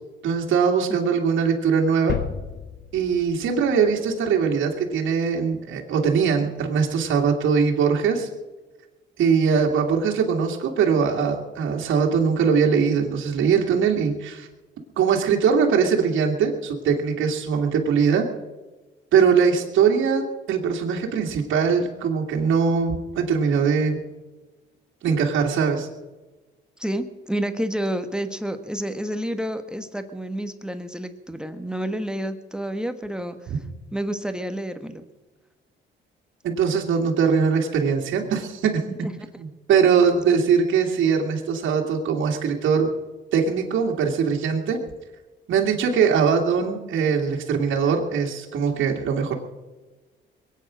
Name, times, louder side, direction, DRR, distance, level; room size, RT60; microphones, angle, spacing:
voice 1, 0.2-2.2 2.9-8.3 9.2-14.5 15.0-18.3 19.1-24.0 25.0-25.9 33.5-33.6 36.4-38.8 39.4-42.9 43.3-44.8 45.5-49.3, right 6 dB, 75° right, 0 dB, 2.3 m, -21 dB
sound 1, 2.1-4.8, left 8 dB, 60° left, 0.9 m, -33 dB
voice 2, 26.8-33.5 33.9-35.0 39.0-39.3 40.3-40.4, right 1 dB, 5° right, 8 dB, 1.3 m, -29 dB
22.0 x 9.2 x 6.3 m, 1.2 s
cardioid pair, 90°, 20 cm